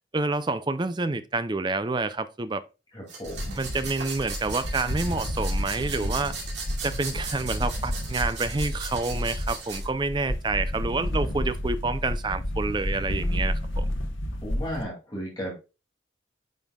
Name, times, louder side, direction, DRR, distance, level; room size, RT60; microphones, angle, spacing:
voice 1, 0.1-2.6 3.6-6.4 6.8-13.9, right 3 dB, 25° right, 0.5 m, -28 dB
voice 2, 2.9-3.6 14.4-15.5, equal, 20° left, 2.4 m, -34 dB
sound 1, 3.1-9.9, right 4 dB, 60° right, 2.4 m, -38 dB
sound 2, 3.2-14.8, left 1 dB, 90° left, 1.1 m, -31 dB
9.3 x 5.4 x 2.3 m
head